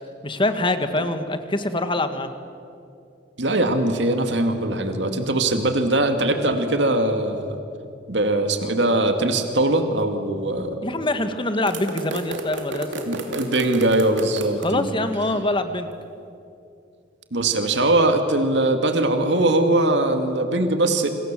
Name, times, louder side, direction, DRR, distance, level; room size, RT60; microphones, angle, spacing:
voice 1, 0.2-2.3 10.8-13.1 14.6-15.9, left 2 dB, 30° left, 9 dB, 1.7 m, -24 dB
voice 2, 3.4-7.6 8.1-10.8 13.1-14.9 17.3-21.1, right 2 dB, 70° right, 6 dB, 2.4 m, -21 dB
sound 1, 11.7-14.7, right 2 dB, 90° right, 2.6 m, -31 dB
28.5 x 26.0 x 7.6 m, 2.5 s
head